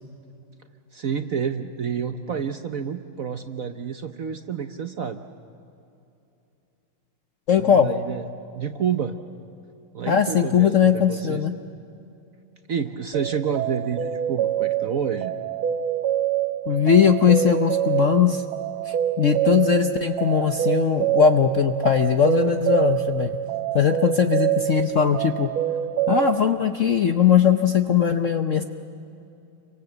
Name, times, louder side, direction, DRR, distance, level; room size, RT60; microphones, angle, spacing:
voice 1, 0.9-5.2 7.6-8.2 8.5-9.2 9.9-11.4 12.7-15.3, right 7 dB, 55° right, 8 dB, 1.0 m, -29 dB
voice 2, 7.5-7.9 10.1-11.5 16.7-18.4 18.9-23.3 23.7-25.5 26.1-28.6, left 8 dB, 55° left, 7 dB, 0.9 m, -19 dB
sound 1, 13.1-26.4, right 11 dB, 85° right, 1.8 m, -26 dB
29.5 x 24.5 x 7.9 m, 2.7 s
omnidirectional pair, 2.2 m